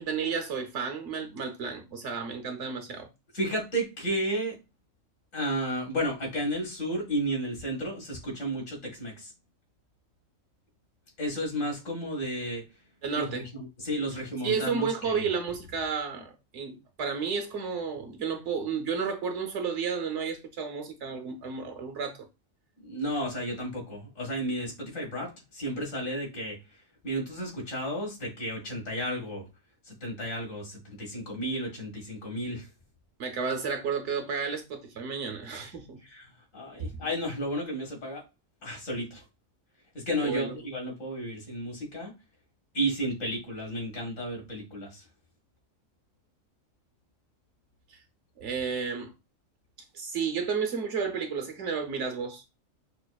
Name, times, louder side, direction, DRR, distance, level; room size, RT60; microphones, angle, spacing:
voice 1, 0.0-3.1 13.0-13.4 14.4-22.2 33.2-36.0 40.2-40.6 48.4-49.1 49.9-52.4, right 5 dB, 65° right, 1.1 m, -32 dB
voice 2, 3.3-4.6 5.3-9.3 11.2-12.6 13.2-15.3 22.8-26.6 27.0-29.4 29.8-32.7 36.0-38.2 38.6-39.2 39.9-42.1 42.7-45.0, right 1 dB, 75° left, 2.0 m, -33 dB
5.5 x 2.5 x 2.3 m
omnidirectional pair, 1.4 m